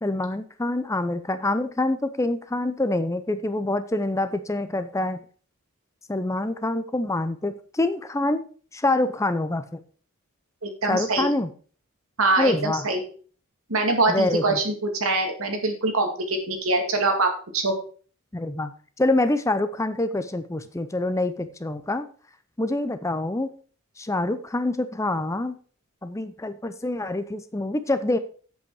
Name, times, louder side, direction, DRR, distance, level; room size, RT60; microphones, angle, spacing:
voice 1, 0.0-5.2 6.1-8.4 8.7-9.8 10.9-11.5 12.4-12.9 14.1-14.6 18.3-18.7 19.0-22.1 22.6-23.5 24.0-25.6 26.0-28.2, left 2 dB, 15° left, 11 dB, 0.5 m, -26 dB
voice 2, 10.6-11.3 12.2-13.0 13.7-17.8, right 2 dB, 75° right, 4 dB, 2.2 m, -24 dB
8.4 x 7.8 x 4.7 m, 0.42 s
head